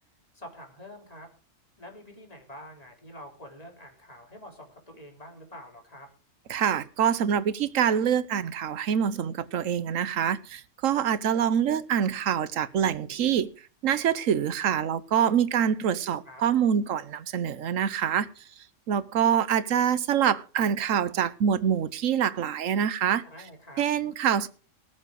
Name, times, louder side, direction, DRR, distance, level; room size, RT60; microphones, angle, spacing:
voice 1, 0.3-1.3 1.8-6.1 15.7-16.4 23.2-23.8, equal, 30° left, 3.7 m, -47 dB
voice 2, 6.5-13.5 13.8-18.3 18.9-23.2 23.8-24.5, right 8 dB, 85° right, 1.2 m, -25 dB
19.0 x 7.5 x 4.8 m
omnidirectional pair, 1.3 m